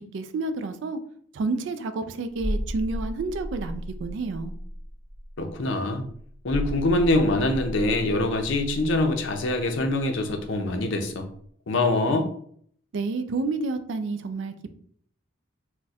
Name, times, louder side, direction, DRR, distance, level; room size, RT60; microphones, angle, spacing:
voice 1, 0.1-1.0 1.3-4.5 12.9-14.7, right 3 dB, 65° right, 10 dB, 0.3 m, -30 dB
sound 1, 2.3-10.8 11.0-11.2, equal, 20° right, 1.3 m, -35 dB
voice 2, 5.4-6.0 6.4-11.3 11.7-12.3, left 2 dB, 70° left, 5 dB, 0.5 m, -24 dB
4.0 x 2.1 x 2.3 m, 0.62 s
head